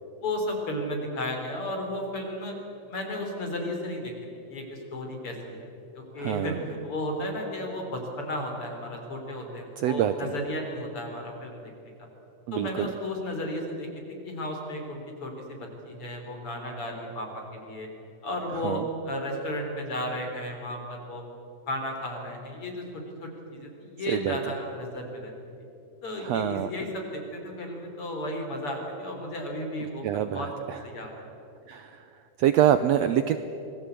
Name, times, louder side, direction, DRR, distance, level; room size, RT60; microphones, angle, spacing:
voice 1, 0.2-2.5 2.9-4.1 4.5-5.7 5.9-11.7 12.5-17.9 18.2-21.2 21.7-25.3 26.0-30.5 30.8-31.2, left 1 dB, 45° left, 2 dB, 4.6 m, -34 dB
voice 2, 6.2-6.6 9.8-10.3 12.5-12.9 18.6-18.8 24.1-24.4 26.2-26.7 30.0-30.8 31.7-32.1 32.4-33.4, right 10 dB, 75° right, 11 dB, 1.6 m, -25 dB
26.5 x 20.0 x 8.4 m, 3.0 s
omnidirectional pair, 3.6 m